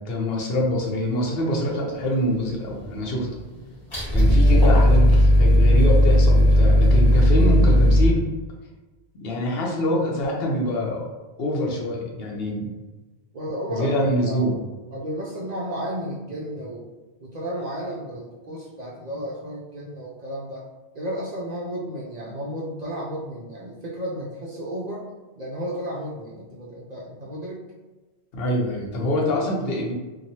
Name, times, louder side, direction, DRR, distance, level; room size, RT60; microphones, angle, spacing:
voice 1, 0.0-3.3 4.1-8.2 9.1-11.0 11.4-12.7 13.7-14.6 27.2-27.3 28.3-29.9, equal, 65° left, -2 dB, 0.9 m, -25 dB
sound 1, 2.0-2.9 3.2-8.1, equal, 45° left, 1.2 m, -16 dB
voice 2, 13.3-14.6 14.9-16.9 17.2-20.6 20.9-25.1 25.4-27.7, equal, 60° right, -4 dB, 0.5 m, -33 dB
3.0 x 2.2 x 2.7 m, 1.2 s
omnidirectional pair, 1.1 m